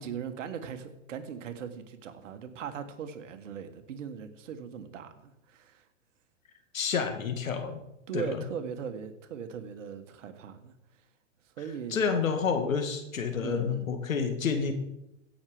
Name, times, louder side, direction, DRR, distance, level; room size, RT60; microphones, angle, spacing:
voice 1, 0.0-5.8 8.1-10.7 11.6-12.0 13.4-13.9, right 7 dB, 70° right, 9 dB, 1.6 m, -39 dB
voice 2, 6.7-7.8 8.1-8.4 11.9-14.7, left 6 dB, 85° left, 6 dB, 2.2 m, -29 dB
16.0 x 6.5 x 5.0 m, 0.87 s
hypercardioid pair, 115°, 39 cm